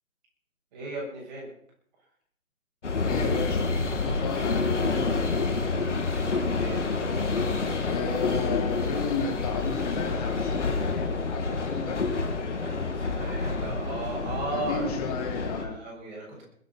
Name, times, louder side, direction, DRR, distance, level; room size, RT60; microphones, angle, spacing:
voice 1, 0.7-1.5 6.1-6.8 12.6-14.9 15.5-16.4, right 2 dB, 30° right, -3 dB, 7.6 m, -36 dB
sound 1, 2.8-15.6, left 3 dB, 60° left, 2.9 m, -28 dB
voice 2, 3.0-5.2 7.9-12.0 14.5-15.8, left 5 dB, 30° left, 2 dB, 3.6 m, -34 dB
21.5 x 9.3 x 5.9 m, 0.62 s
figure-of-eight pair, 145°, 40 cm